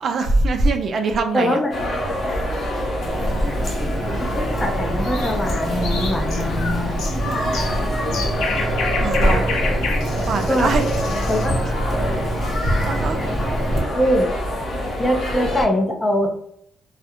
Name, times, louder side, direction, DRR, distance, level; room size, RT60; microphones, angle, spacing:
voice 1, 0.0-1.6 2.3-2.4 7.0-7.6 9.0-9.5 10.2-10.9 11.5-11.6 12.2-12.4 12.8-13.2 13.6-13.7, right 3 dB, 60° right, 0.3 m, -23 dB
voice 2, 1.3-1.8 2.3-2.5 3.5-3.6 4.2-7.1 10.5-10.7 11.3-11.6 13.2-13.3 13.9-14.3 15.0-16.3, equal, 20° left, 0.5 m, -22 dB
sound 1, 1.7-15.7, equal, 50° left, 0.9 m, -25 dB
Water tap faucet, 3.1-13.8, right 1 dB, 15° right, 0.8 m, -26 dB
sound 2, 5.0-11.6, left 4 dB, 85° left, 0.5 m, -30 dB
2.4 x 2.0 x 2.8 m
cardioid pair, 90°, 0 cm